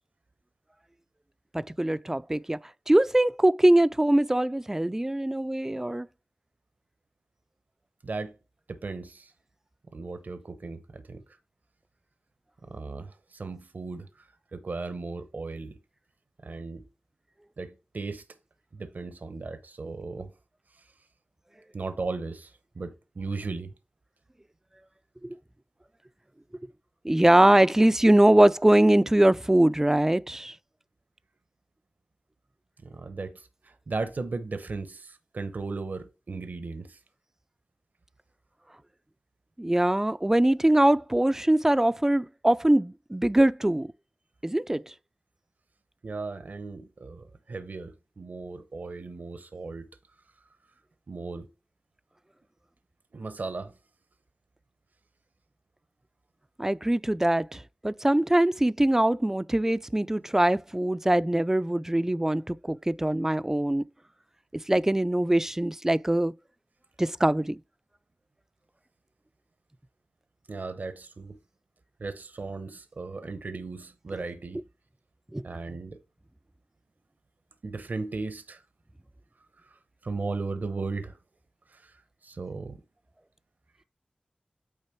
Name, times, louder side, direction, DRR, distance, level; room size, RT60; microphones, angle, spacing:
voice 1, 1.5-2.6 2.9-6.1 25.2-25.3 27.0-30.5 39.6-43.9 44.4-44.9 56.6-63.8 64.7-66.3 67.0-67.6 75.3-75.5, right 1 dB, 15° right, 0.3 m, -22 dB
voice 2, 8.0-8.3 8.7-9.3 9.9-11.2 12.6-14.3 14.5-15.8 16.4-16.8 17.6-18.2 18.7-20.3 21.7-23.7 32.8-37.0 46.0-49.9 51.1-51.5 53.1-53.7 70.5-71.4 72.0-74.6 75.4-76.0 77.6-78.6 80.0-81.2 81.7-81.9 82.2-82.8, right 3 dB, 75° right, 0.8 m, -36 dB
8.8 x 3.4 x 4.5 m
wide cardioid pair, 60°, 3 cm